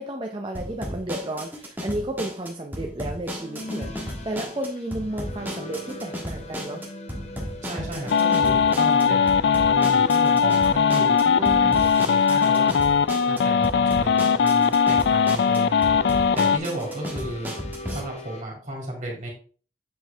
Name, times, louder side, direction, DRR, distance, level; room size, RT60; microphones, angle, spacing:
voice 1, 0.0-6.8 11.4-12.1, right 1 dB, 25° right, 2 dB, 0.7 m, -32 dB
sound 1, 0.5-18.0, equal, 10° right, 1.4 m, -35 dB
sound 2, 3.3-18.4, equal, 40° left, 0.8 m, -40 dB
voice 2, 7.6-12.8 13.2-17.5 17.8-19.3, right 1 dB, 45° right, -1 dB, 2.7 m, -34 dB
sound 3, 8.1-16.6, left 6 dB, 70° left, 0.3 m, -20 dB
7.4 x 4.7 x 3.4 m, 0.40 s
head